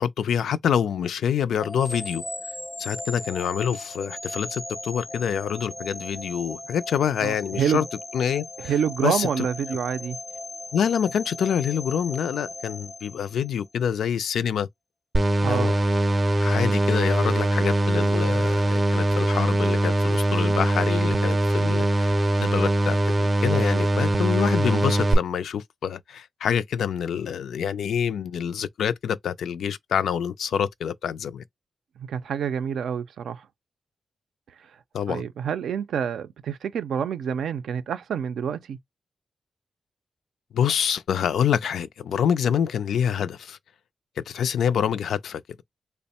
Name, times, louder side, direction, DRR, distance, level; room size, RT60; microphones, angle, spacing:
voice 1, 0.0-2.2 2.8-7.9 8.1-8.7 9.0-9.5 10.7-14.7 15.5-15.7 16.4-31.4 34.9-35.2 40.5-43.6 44.3-45.4, left 8 dB, 90° left, 0.3 m, -26 dB
sound 1, 1.6-13.7, left 2 dB, 20° left, 0.4 m, -38 dB
voice 2, 7.2-7.8 8.6-10.2 15.4-15.7 32.0-33.5 35.1-38.8, right 7 dB, 90° right, 0.4 m, -27 dB
sound 2, 15.1-25.1, right 1 dB, 30° right, 0.5 m, -22 dB
3.4 x 2.0 x 4.1 m
cardioid pair, 105°, 0 cm